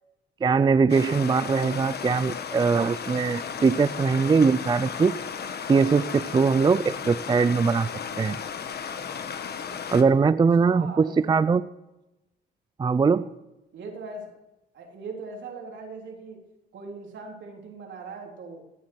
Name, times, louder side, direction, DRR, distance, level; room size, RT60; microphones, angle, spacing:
voice 1, 0.4-5.1 5.7-7.9 8.2-8.4 9.9-11.6 12.8-13.3, right 5 dB, 20° right, 15 dB, 0.4 m, -21 dB
Stream, 0.9-10.0, left 7 dB, 55° left, 1.4 m, -35 dB
voice 2, 10.6-11.4 13.7-14.4 14.7-16.5 16.7-18.6, right 4 dB, 70° right, 1 dB, 3.7 m, -40 dB
16.0 x 8.7 x 7.9 m, 0.97 s
cardioid pair, 90°, 20 cm